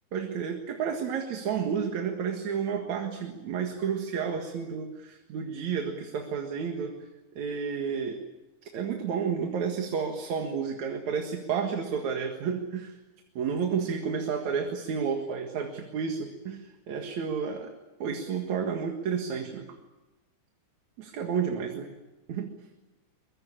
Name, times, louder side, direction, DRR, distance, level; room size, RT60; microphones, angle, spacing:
voice 1, 0.1-7.0 7.4-8.2 8.7-13.0 13.4-17.7 18.0-19.8 21.0-21.9 22.3-22.5, right 6 dB, 65° right, 4 dB, 3.1 m, -31 dB
24.0 x 22.5 x 8.9 m, 1.1 s
omnidirectional pair, 3.5 m